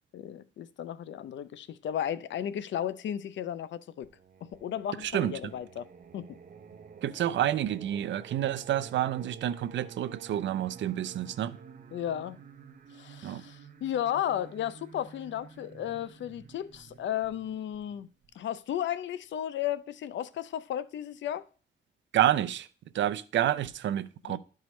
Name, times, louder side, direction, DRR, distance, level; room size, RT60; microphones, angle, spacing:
voice 1, 0.1-4.1 4.6-5.9 6.1-6.3 11.9-12.4 12.9-18.1 18.4-21.5 24.2-24.4, left 10 dB, 75° left, 0.5 m, -34 dB
Singing, 4.0-18.8, right 6 dB, 45° right, 0.8 m, -50 dB
voice 2, 5.0-5.3 7.0-11.6 13.2-13.4 22.1-22.7 22.9-24.4, right 12 dB, 75° right, 0.5 m, -29 dB
12.0 x 4.7 x 3.1 m
cardioid pair, 115°, 19 cm